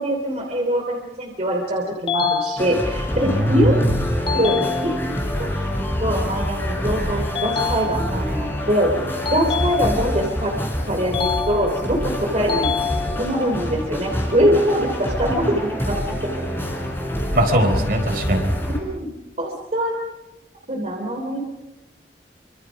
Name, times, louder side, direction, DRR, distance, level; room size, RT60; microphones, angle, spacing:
voice 1, 0.0-3.8 4.3-4.6 4.8-5.1 5.4-5.6 6.0-8.9 9.3-10.5 10.9-12.7 13.2-15.6 15.9-16.0 16.3-16.4 18.8-19.1 19.4-19.9 20.7-21.4, equal, 40° right, 0 dB, 3.3 m, -23 dB
sound 1, 2.1-3.1 4.3-5.3 7.3-8.4 9.2-10.3 11.1-12.0 12.5-13.5, left 6 dB, 30° left, 1.1 m, -27 dB
sound 2, 2.6-18.8, equal, 15° left, 4.1 m, -26 dB
voice 2, 3.2-3.9 17.3-18.6, equal, 55° right, 3 dB, 4.5 m, -20 dB
27.0 x 26.0 x 5.3 m, 0.98 s
head